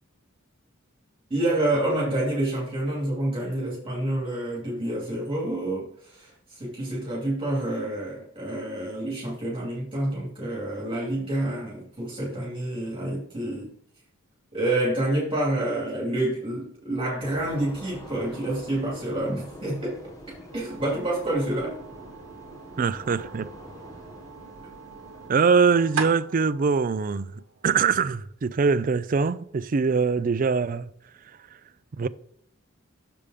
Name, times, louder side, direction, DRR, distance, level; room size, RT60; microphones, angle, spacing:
voice 1, 1.3-13.7 14.5-20.0 20.5-21.8, right 1 dB, 25° right, 2.4 m, -28 dB
sound 1, 17.2-25.3, equal, 15° left, 1.2 m, -45 dB
sound 2, 20.5-28.3, right 5 dB, 85° right, 1.0 m, -40 dB
voice 2, 22.8-23.5 25.3-27.3 27.6-30.9 32.0-32.1, right 5 dB, 40° right, 0.4 m, -23 dB
6.9 x 5.3 x 4.9 m
head